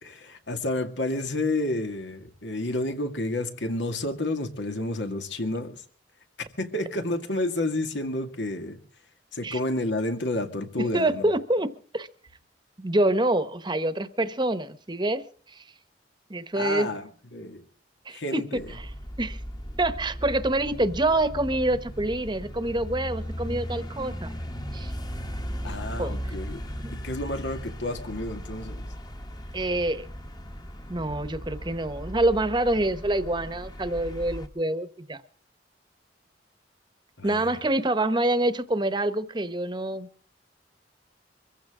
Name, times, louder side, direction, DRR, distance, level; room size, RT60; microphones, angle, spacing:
voice 1, 0.0-5.8 6.4-8.8 9.3-11.3 16.5-17.6 18.1-18.7 25.6-26.6 26.9-28.9 37.2-37.6, left 2 dB, 85° left, 6 dB, 2.3 m, -30 dB
voice 2, 10.8-12.1 12.8-15.2 15.5-15.6 16.3-16.9 18.1-18.9 19.2-19.4 19.8-24.3 24.7-24.9 26.0-26.2 26.8-26.9 29.5-30.1 30.9-35.2 37.2-40.1, right 1 dB, 25° right, 12 dB, 1.0 m, -26 dB
sound 1, 18.6-34.5, equal, 25° left, 1.3 m, -37 dB
24.0 x 15.5 x 3.8 m, 0.41 s
head